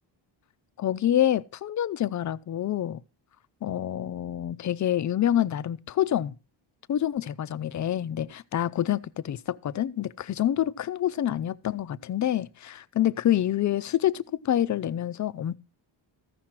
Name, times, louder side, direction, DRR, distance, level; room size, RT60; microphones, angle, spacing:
voice 1, 0.8-3.0 3.6-6.3 6.9-15.5, left 11 dB, 40° left, 0.5 m, -27 dB
14.5 x 5.9 x 4.6 m
cardioid pair, 115°, 46 cm